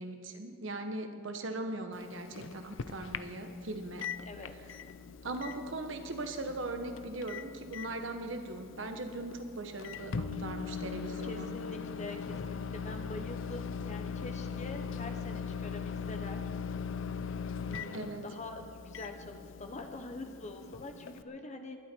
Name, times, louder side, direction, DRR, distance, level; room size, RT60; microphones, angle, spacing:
voice 1, 0.0-4.1 5.2-11.5 17.9-18.2, right 2 dB, 70° right, 6 dB, 1.4 m, -39 dB
Microwave oven, 1.9-21.2, left 5 dB, 70° left, 0.6 m, -41 dB
voice 2, 4.2-4.8 11.2-16.5 17.6-21.8, left 2 dB, 35° left, 5 dB, 1.2 m, -45 dB
20.5 x 12.0 x 4.6 m, 2.3 s
head